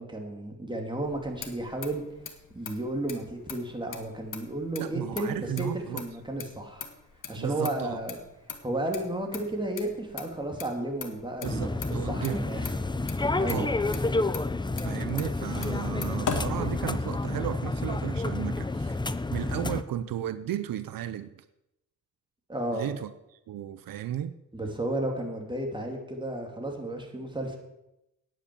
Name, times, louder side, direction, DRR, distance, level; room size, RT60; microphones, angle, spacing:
voice 1, 0.0-2.0 2.5-6.9 7.3-8.2 8.6-12.6 13.4-14.0 22.5-22.9 24.5-27.6, right 1 dB, 15° right, 2.9 m, -33 dB
Motor vehicle (road), 1.0-17.3, left 5 dB, 65° left, 1.7 m, -41 dB
voice 2, 4.8-6.0 7.4-8.0 11.4-12.4 13.5-13.7 14.8-19.0 19.3-21.4 22.7-23.1 23.5-24.4, right 11 dB, 80° right, 0.7 m, -34 dB
sound 1, 11.4-19.8, left 2 dB, 15° left, 0.6 m, -30 dB
9.8 x 9.2 x 7.1 m
cardioid pair, 80°, 33 cm